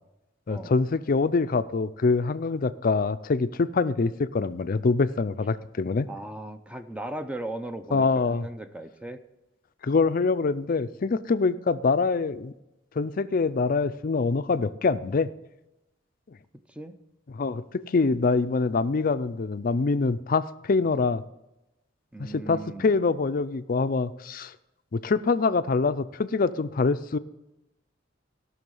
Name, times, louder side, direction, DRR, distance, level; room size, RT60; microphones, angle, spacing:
voice 1, 0.5-6.1 7.9-8.5 9.8-12.5 13.0-15.3 17.3-21.2 22.2-24.5 24.9-27.2, left 4 dB, 45° left, 13 dB, 0.5 m, -25 dB
voice 2, 6.1-9.2 16.7-16.9 22.1-22.9, right 1 dB, 5° right, 9 dB, 0.6 m, -37 dB
16.5 x 6.4 x 5.4 m, 0.95 s
head